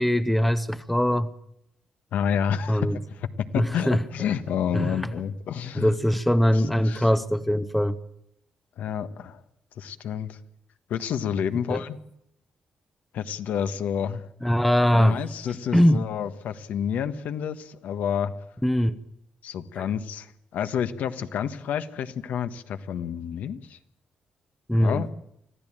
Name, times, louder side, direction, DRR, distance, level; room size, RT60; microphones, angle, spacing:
voice 1, 0.0-1.3 2.7-3.0 3.5-4.0 4.7-4.9 5.8-8.0 11.7-11.8 14.4-15.2 15.7-16.0 18.6-19.0 24.7-25.1, equal, 5° left, 13 dB, 0.8 m, -22 dB
voice 2, 2.1-3.3 3.5-5.9 6.5-7.1 8.8-9.4 9.8-10.4 10.9-12.0 13.1-14.2 14.9-18.3 19.4-23.8 24.8-25.1, left 8 dB, 75° left, 11 dB, 1.4 m, -29 dB
25.5 x 15.5 x 8.9 m, 0.76 s
wide cardioid pair, 175°, 3 cm